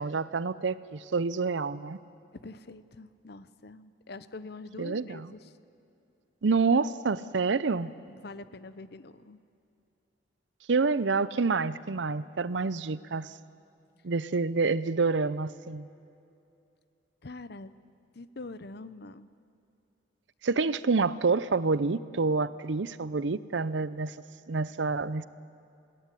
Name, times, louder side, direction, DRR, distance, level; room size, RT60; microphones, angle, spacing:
voice 1, 0.0-2.0 4.8-5.3 6.4-7.9 10.7-13.3 14.0-15.9 20.4-24.1 24.5-25.3, right 4 dB, 75° right, 16 dB, 0.6 m, -28 dB
voice 2, 2.3-5.5 8.1-9.4 17.2-17.7 18.1-19.4, left 3 dB, 60° left, 14 dB, 0.8 m, -45 dB
21.5 x 17.5 x 10.0 m, 2.6 s
head